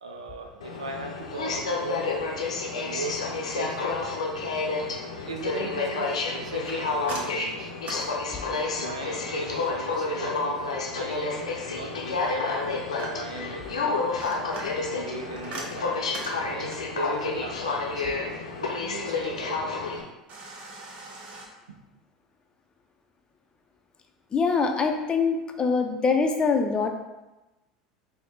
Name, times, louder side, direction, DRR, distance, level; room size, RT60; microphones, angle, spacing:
voice 1, 0.0-2.1 2.8-4.2 5.2-7.7 8.4-14.1 14.9-16.2 16.4-19.7 21.7-21.8, right 2 dB, 80° right, 3 dB, 0.4 m, -38 dB
Aircraft, 0.6-20.0, left 3 dB, 75° left, 0.5 m, -30 dB
sound 1, 6.6-8.9 12.2-13.5 14.0-17.0 20.3-21.5, right 2 dB, 40° right, 0.9 m, -41 dB
voice 2, 24.3-26.9, left 4 dB, 25° left, 4 dB, 0.5 m, -24 dB
4.8 x 2.1 x 4.0 m, 1.0 s
figure-of-eight pair, 75°, 3 cm